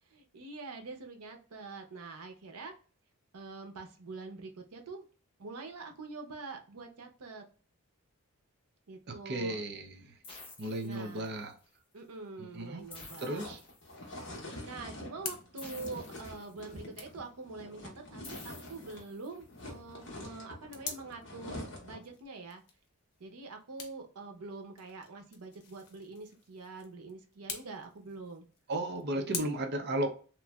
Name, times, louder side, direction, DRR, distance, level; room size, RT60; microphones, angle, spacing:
voice 1, 0.1-2.7 3.3-5.0 5.4-7.4 8.9-9.6 10.8-11.4 11.9-13.5 14.6-22.6 23.2-28.5 29.1-29.5, right 3 dB, 85° right, 0.7 m, -45 dB
voice 2, 9.1-10.1 10.6-11.6 12.4-12.9 13.2-13.6 28.7-30.1, right 1 dB, 45° right, 0.5 m, -35 dB
sound 1, 10.2-11.6 12.9-14.3 15.6-16.9 18.2-19.6, left 3 dB, 25° left, 0.7 m, -52 dB
sound 2, 11.4-29.4, left 5 dB, 90° left, 0.7 m, -49 dB
sound 3, 12.8-19.1 19.4-22.1, left 1 dB, 50° left, 1.0 m, -46 dB
3.0 x 2.5 x 2.3 m
head